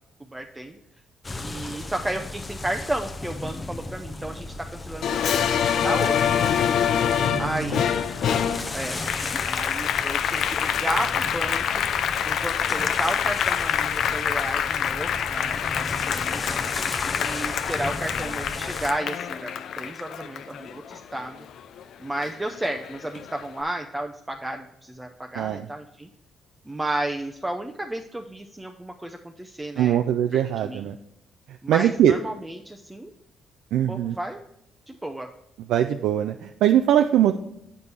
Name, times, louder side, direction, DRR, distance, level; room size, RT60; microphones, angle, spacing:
voice 1, 0.3-0.7 1.4-6.3 7.4-8.0 8.7-9.0 9.5-11.8 12.3-16.4 17.2-21.4 22.0-26.1 26.7-30.0 30.3-30.9 31.6-33.1 33.9-34.4 34.9-35.3, right 1 dB, 10° right, 3 dB, 0.5 m, -32 dB
sound 1, 1.2-18.9, left 2 dB, 25° left, 0.7 m, -35 dB
Applause, 5.0-21.8 22.2-23.4, left 8 dB, 70° left, 0.4 m, -26 dB
voice 2, 7.2-7.5 25.4-25.7 29.8-31.0 31.7-32.1 33.7-34.2 35.7-37.4, right 11 dB, 85° right, 7 dB, 0.3 m, -21 dB
8.1 x 5.3 x 4.4 m, 0.79 s
cardioid pair, 90°, 0 cm